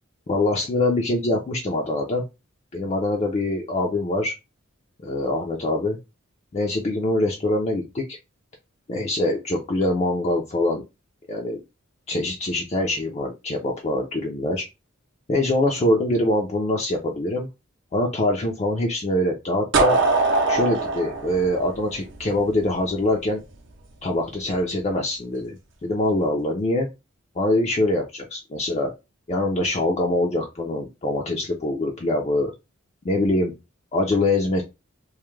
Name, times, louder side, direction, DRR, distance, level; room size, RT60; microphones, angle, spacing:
voice 1, 0.3-2.2 2.7-4.3 5.0-6.0 6.5-8.2 8.9-10.8 11.3-11.6 12.1-14.6 15.3-17.5 17.9-20.0 20.5-23.4 24.0-25.6 25.8-26.9 27.4-28.9 29.3-32.5 33.0-33.5 33.9-34.6, left 1 dB, 30° left, 0 dB, 0.4 m, -24 dB
sound 1, 19.7-22.6, right 3 dB, 60° right, 0.6 m, -22 dB
2.3 x 2.1 x 3.0 m, 0.25 s
head